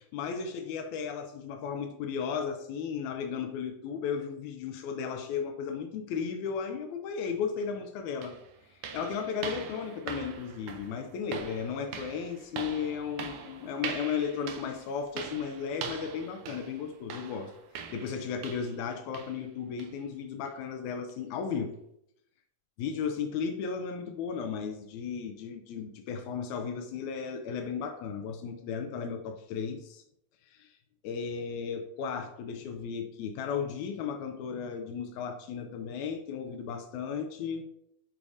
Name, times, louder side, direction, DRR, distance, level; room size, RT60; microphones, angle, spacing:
voice 1, 0.1-8.3 8.7-17.5 17.9-21.7 22.8-30.0 30.5-30.7 31.0-37.6, left 6 dB, 85° left, 6 dB, 1.6 m, -35 dB
sound 1, 7.6-7.7 8.2-18.9 19.1-19.4 19.8-20.0 20.5-20.6 21.1-21.2, right 6 dB, 90° right, 1.6 m, -42 dB
8.9 x 4.8 x 2.7 m, 0.76 s
omnidirectional pair, 4.1 m